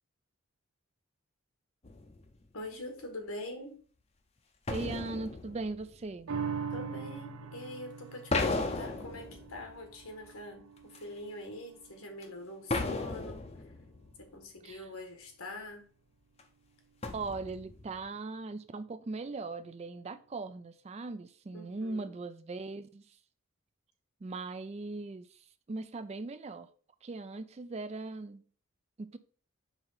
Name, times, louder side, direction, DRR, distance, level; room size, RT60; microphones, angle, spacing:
sound 1, 1.8-2.4 4.7-6.4 8.3-10.3 11.0-11.1 12.2-12.3 12.7-14.3 16.4-16.5 17.0-18.1, left 3 dB, 30° left, 0.6 m, -36 dB
voice 1, 2.5-3.8 6.7-13.4 14.2-15.8 21.5-22.2, left 1 dB, 85° left, 1.6 m, -44 dB
voice 2, 4.7-6.3 14.6-14.8 17.1-23.0 24.2-25.4 25.7-26.7 27.0-28.4 29.0-29.2, right 3 dB, 30° right, 0.3 m, -39 dB
sound 2, 6.3-12.9 13.4-13.5, right 6 dB, 90° right, 0.6 m, -42 dB
4.8 x 3.8 x 5.6 m
head